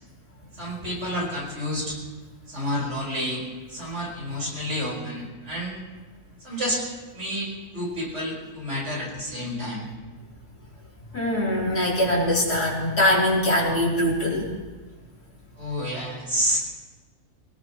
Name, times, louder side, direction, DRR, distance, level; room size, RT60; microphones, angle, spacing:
voice 1, 0.6-2.0 2.5-3.4 3.7-5.8 6.4-6.8 7.1-9.9 15.6-16.6, equal, 45° right, -4 dB, 5.6 m, -29 dB
voice 2, 11.1-14.5, left 1 dB, 75° left, -4 dB, 4.3 m, -22 dB
24.5 x 17.5 x 3.2 m, 1.3 s
omnidirectional pair, 1.6 m